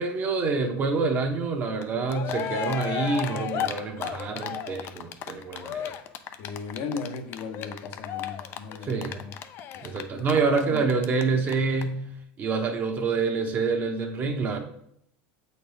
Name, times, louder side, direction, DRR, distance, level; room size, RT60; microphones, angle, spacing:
voice 1, 0.0-5.9 8.8-9.2 9.8-12.0 12.4-14.6, right 4 dB, 35° right, 3 dB, 1.1 m, -27 dB
Cheering, 1.8-11.2 11.5-11.6 11.8-11.9, left 9 dB, 50° left, 0.5 m, -33 dB
voice 2, 6.4-9.3 9.7-10.8, left 4 dB, 65° left, 5 dB, 1.0 m, -37 dB
7.7 x 4.2 x 3.5 m, 0.71 s
supercardioid pair, 120°, 5 cm